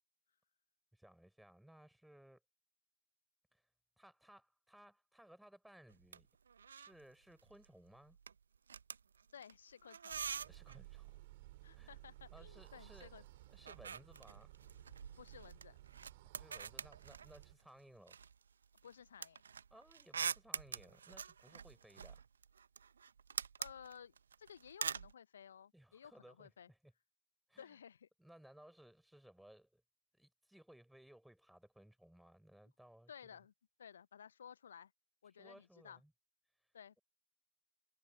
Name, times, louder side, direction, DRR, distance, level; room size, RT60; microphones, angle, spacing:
voice 1, 0.9-2.4 3.5-3.6 4.0-6.3 6.7-8.2 10.4-11.2 11.7-12.0 12.3-14.5 16.3-18.2 19.7-22.2 25.7-26.9 27.5-27.8 28.2-29.8 30.1-33.4 35.4-36.1, right 1 dB, ahead, 5.2 m, -62 dB
sound 1, 5.9-6.2 6.5-7.0 7.3-7.7 8.0-10.9 12.0-13.1 13.3-17.6 18.1-25.1, right 6 dB, 70° right, 1.1 m, -46 dB
voice 2, 9.3-10.2 11.6-13.2 15.2-15.8 18.8-19.4 23.6-26.7 27.6-28.1 33.1-33.5 33.8-34.9 35.2-36.0 36.7-37.0, left 8 dB, 70° left, 0.8 m, -56 dB
sound 2, 10.1-17.5, right 19 dB, 50° right, 4.1 m, -57 dB
figure-of-eight pair, 100°, 0 cm